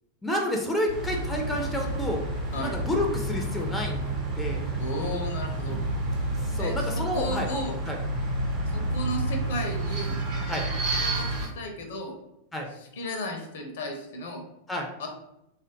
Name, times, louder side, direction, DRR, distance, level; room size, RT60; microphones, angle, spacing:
voice 1, 0.2-2.2 2.6-4.6 6.5-7.5 7.9-8.0 10.5-10.7 12.5-12.7 14.7-14.9, left 1 dB, 10° left, 2 dB, 0.5 m, -29 dB
sound 1, 0.9-11.5, right 1 dB, 35° right, 0.8 m, -30 dB
voice 2, 4.8-5.8 6.6-7.8 8.7-10.2 11.0-12.1 12.7-14.4 15.0-15.1, left 1 dB, 60° left, 3 dB, 0.6 m, -34 dB
3.2 x 2.4 x 2.7 m, 0.84 s
figure-of-eight pair, 90°, 0 cm